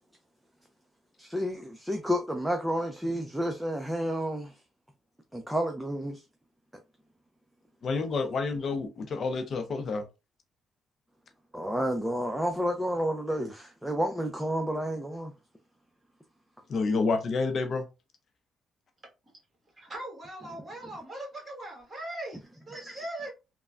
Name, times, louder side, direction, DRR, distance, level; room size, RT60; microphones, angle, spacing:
voice 1, 1.2-4.5 5.3-6.2 11.5-15.3 22.7-23.1, equal, 5° right, 0.5 m, -30 dB
voice 2, 7.8-10.0 16.7-17.9, left 4 dB, 55° left, 0.5 m, -29 dB
voice 3, 19.8-23.3, right 1 dB, 30° right, 1.6 m, -40 dB
3.3 x 2.2 x 2.4 m
cardioid pair, 90°, 0 cm